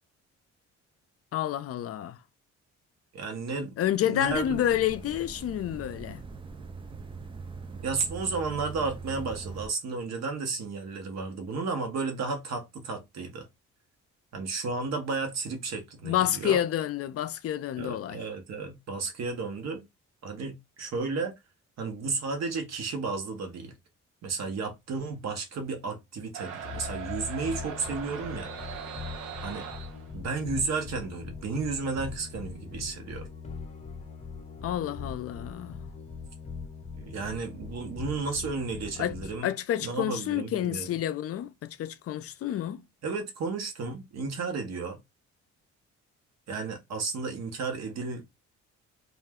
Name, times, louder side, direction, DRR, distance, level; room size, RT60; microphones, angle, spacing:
voice 1, 1.3-2.2 3.8-6.2 16.0-18.2 34.6-35.8 39.0-39.2 39.4-42.8, left 11 dB, 50° left, 0.4 m, -29 dB
voice 2, 3.1-3.8 4.0-4.6 7.8-13.5 14.3-16.6 17.8-19.8 20.2-21.3 21.8-23.7 24.2-28.5 29.4-29.7 30.1-33.3 36.9-39.5 39.8-40.9 43.0-45.0 46.5-48.3, right 4 dB, 60° right, 1.0 m, -33 dB
sound 1, 4.3-9.7, right 4 dB, 20° right, 0.3 m, -42 dB
sound 2, 26.3-30.1, right 7 dB, 85° right, 0.7 m, -40 dB
sound 3, 26.6-39.4, left 5 dB, 25° left, 0.8 m, -41 dB
2.4 x 2.2 x 3.5 m
cardioid pair, 90°, 30 cm